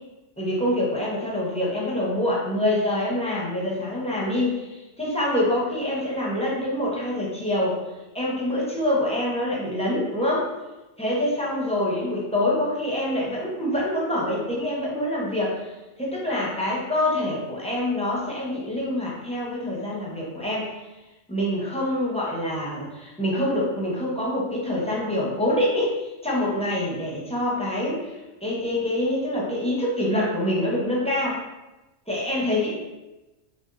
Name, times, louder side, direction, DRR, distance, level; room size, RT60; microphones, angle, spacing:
voice 1, 0.4-7.8 8.1-10.5 11.0-15.7 16.0-20.8 21.3-28.1 28.4-31.4 32.1-32.7, left 1 dB, 5° left, -5 dB, 0.7 m, -25 dB
4.2 x 3.4 x 2.6 m, 1.1 s
omnidirectional pair, 1.3 m